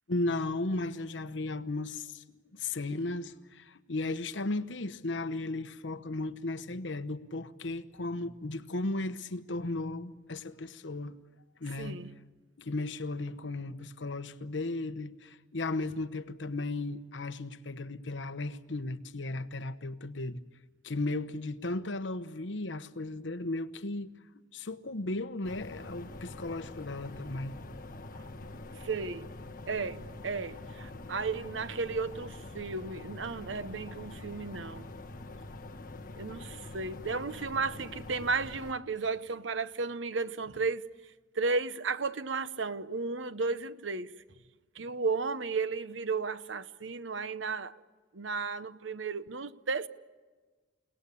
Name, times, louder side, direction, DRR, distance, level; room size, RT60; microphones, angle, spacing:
voice 1, 0.1-2.2 2.5-11.2 11.6-12.0 12.6-20.4 20.8-24.1 24.5-27.6, left 2 dB, 70° left, 1.0 m, -35 dB
voice 2, 11.8-12.1 28.1-28.3 28.8-29.3 29.7-34.9 36.2-40.9 41.3-44.2 44.7-47.8 48.1-49.9, right 4 dB, 75° right, 0.9 m, -34 dB
sound 1, 25.4-38.7, left 2 dB, 50° left, 1.4 m, -45 dB
29.5 x 18.5 x 8.5 m
head